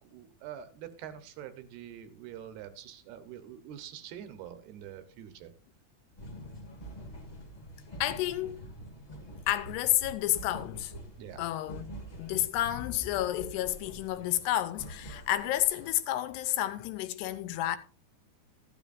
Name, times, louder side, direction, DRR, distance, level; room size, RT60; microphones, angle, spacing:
voice 1, 0.0-5.5 11.2-11.4, right 10 dB, 75° right, 2.9 m, -45 dB
sound 1, 6.2-16.0, right 1 dB, 60° left, 0.4 m, -46 dB
voice 2, 8.0-8.7 9.5-10.9 11.4-11.9 12.2-17.8, left 14 dB, 90° left, 2.8 m, -30 dB
13.0 x 12.5 x 2.5 m
omnidirectional pair, 4.7 m